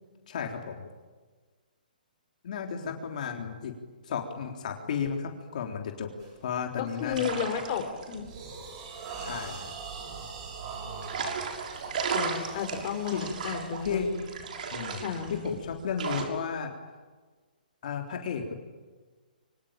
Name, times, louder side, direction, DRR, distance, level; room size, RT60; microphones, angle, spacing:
voice 1, 0.3-0.8 2.4-3.8 4.0-6.1 6.4-7.3 9.2-9.7 13.1-13.3 13.8-14.2 14.7-16.7 17.8-18.5, left 6 dB, 55° left, 2 dB, 3.8 m, -33 dB
sound 1, 6.2-6.4 6.9-7.2 7.7-15.8, right 5 dB, 35° right, 7.8 m, -43 dB
voice 2, 6.8-8.2 12.1-14.3 15.0-15.4, left 8 dB, 35° left, 5 dB, 4.3 m, -33 dB
sound 2, 7.0-10.2 11.0-16.2, right 5 dB, 60° right, 6.2 m, -35 dB
26.0 x 25.0 x 9.1 m, 1.4 s
hypercardioid pair, 150°, 5 cm